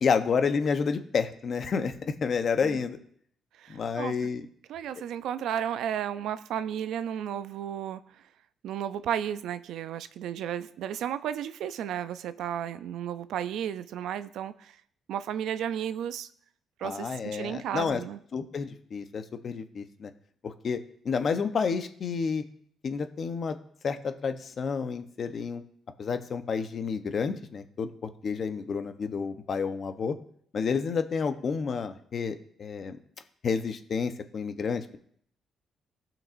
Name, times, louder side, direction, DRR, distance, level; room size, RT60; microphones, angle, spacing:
voice 1, 0.0-3.0 3.7-4.4 16.8-18.0 18.3-20.1 20.4-22.4 22.8-23.6 23.8-25.6 26.0-30.1 30.5-33.0 33.4-35.0, left 5 dB, 50° left, 0.9 m, -30 dB
voice 2, 3.6-8.2 8.6-14.8 15.1-16.3 16.8-18.2, right 9 dB, 80° right, 0.4 m, -33 dB
16.0 x 6.0 x 2.6 m
cardioid pair, 90°, 0 cm